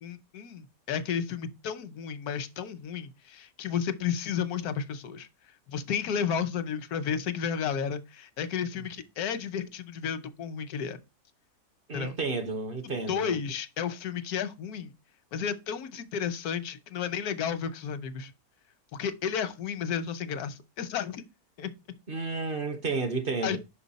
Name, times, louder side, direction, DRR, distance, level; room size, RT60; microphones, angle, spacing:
voice 1, 0.0-5.3 5.7-11.0 11.9-12.1 12.8-14.9 15.3-18.3 19.0-21.2 21.6-21.7 23.4-23.6, left 7 dB, 90° left, 1.3 m, -32 dB
voice 2, 11.9-13.4 22.1-23.6, right 3 dB, 45° right, 0.9 m, -31 dB
5.8 x 5.4 x 4.0 m
omnidirectional pair, 1.5 m